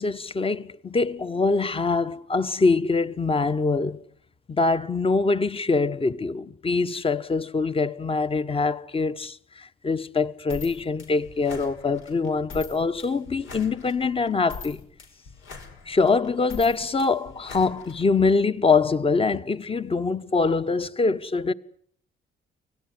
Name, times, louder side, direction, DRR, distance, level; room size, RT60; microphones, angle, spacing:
voice 1, 0.0-4.0 4.5-14.8 15.9-21.5, left 4 dB, 30° left, 1.2 m, -24 dB
sound 1, 10.5-18.3, left 4 dB, 80° left, 5.4 m, -43 dB
25.0 x 18.0 x 9.5 m
cardioid pair, 90°, 20 cm